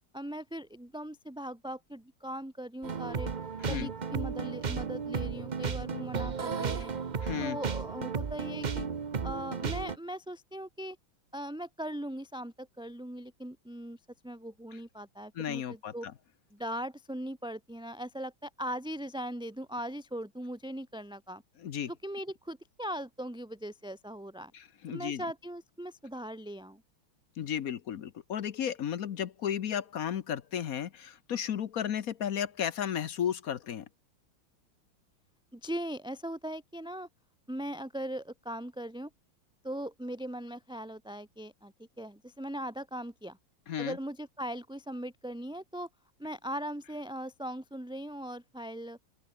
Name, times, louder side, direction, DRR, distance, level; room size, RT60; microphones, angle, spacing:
voice 1, 0.1-3.3 3.7-6.9 7.4-8.9 9.2-11.0 11.3-14.0 14.2-16.1 16.5-21.4 21.9-24.5 24.9-26.8 35.5-37.1 37.5-39.1 39.6-43.4 43.8-45.9 46.2-49.0, right 1 dB, ahead, 1.5 m, -39 dB
sound 1, 2.8-10.0, right 6 dB, 55° right, 0.4 m, -34 dB
voice 2, 7.2-7.6 15.3-16.1 21.6-21.9 24.5-25.2 27.4-33.9 43.7-44.0, left 9 dB, 55° left, 1.1 m, -34 dB
open air
omnidirectional pair, 2.2 m